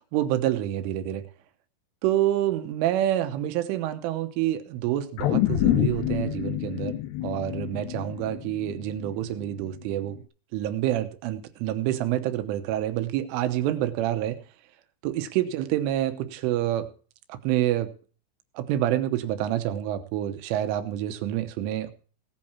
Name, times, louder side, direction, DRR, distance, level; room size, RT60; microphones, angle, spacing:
voice 1, 0.1-1.3 2.0-7.0 7.2-10.2 10.5-14.4 15.0-16.9 17.3-17.9 18.6-21.9, right 12 dB, 85° right, 9 dB, 3.4 m, -27 dB
sound 1, 5.2-9.7 10.1-10.2, left 14 dB, 75° left, 2.6 m, -27 dB
18.0 x 8.7 x 4.3 m, 0.39 s
omnidirectional pair, 5.8 m